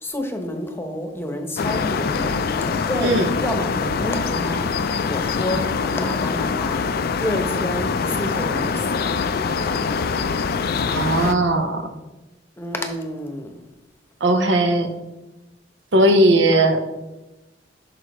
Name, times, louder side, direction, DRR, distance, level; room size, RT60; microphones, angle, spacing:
voice 1, 0.0-2.3 2.8-4.7 5.1-5.6 5.9-6.8 7.2-9.1 12.6-13.6, left 1 dB, 15° left, 4 dB, 0.9 m, -29 dB
sound 1, 1.6-11.4, left 5 dB, 55° left, 0.4 m, -24 dB
voice 2, 10.9-11.8 14.2-14.9 15.9-16.8, right 1 dB, 85° right, 6 dB, 0.9 m, -17 dB
11.5 x 4.7 x 3.1 m, 1.0 s
head